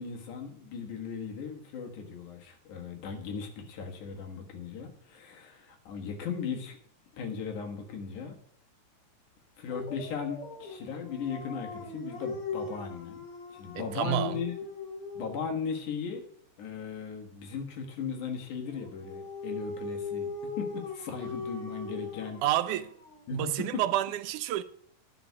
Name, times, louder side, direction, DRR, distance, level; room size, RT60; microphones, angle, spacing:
voice 1, 0.0-6.8 7.1-8.4 9.6-13.2 13.5-14.5 15.1-16.2 16.6-20.3 20.6-22.4 23.3-23.8, left 6 dB, 85° left, 3.0 m, -37 dB
Dog, 9.7-15.5 18.7-23.3, left 4 dB, 65° left, 3.6 m, -40 dB
voice 2, 13.8-14.4 22.4-22.9 23.3-24.6, right 13 dB, 90° right, 2.1 m, -29 dB
11.0 x 4.8 x 8.2 m
omnidirectional pair, 3.4 m